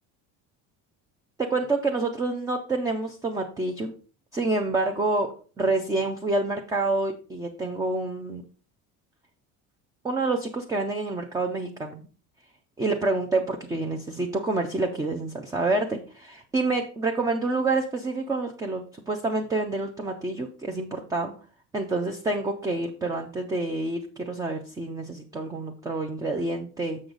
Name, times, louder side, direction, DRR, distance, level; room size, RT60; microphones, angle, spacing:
voice 1, 1.4-3.9 4.3-8.4 10.0-12.1 12.8-21.3 21.7-27.0, right 2 dB, 10° right, 3 dB, 0.4 m, -28 dB
6.9 x 6.4 x 3.8 m, 0.38 s
cardioid pair, 170°, 35 cm